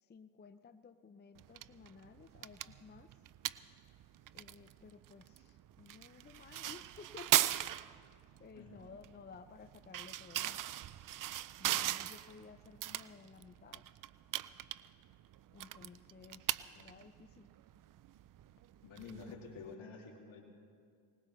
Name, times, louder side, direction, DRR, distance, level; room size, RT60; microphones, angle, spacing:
voice 1, 0.0-3.2 4.3-7.7 8.4-10.6 11.6-13.8 15.5-17.5, left 5 dB, 20° left, 10 dB, 0.6 m, -55 dB
sound 1, 1.4-19.7, right 13 dB, 45° right, 0.5 m, -40 dB
voice 2, 18.8-20.4, left 4 dB, 70° left, 0 dB, 2.8 m, -49 dB
20.5 x 19.5 x 3.2 m, 2.2 s
supercardioid pair, 65°, 48 cm